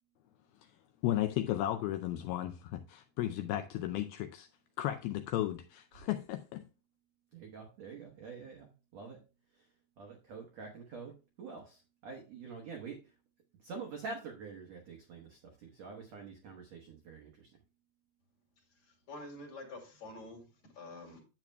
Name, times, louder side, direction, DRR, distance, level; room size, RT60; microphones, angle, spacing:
voice 1, 1.0-4.5 4.8-6.6, left 13 dB, 80° left, 2.2 m, -34 dB
voice 2, 7.3-9.2 9.5-13.1 13.6-17.6, right 4 dB, 75° right, 1.5 m, -47 dB
voice 3, 18.6-21.2, left 2 dB, 45° left, 3.1 m, -48 dB
10.5 x 8.4 x 2.2 m
omnidirectional pair, 4.7 m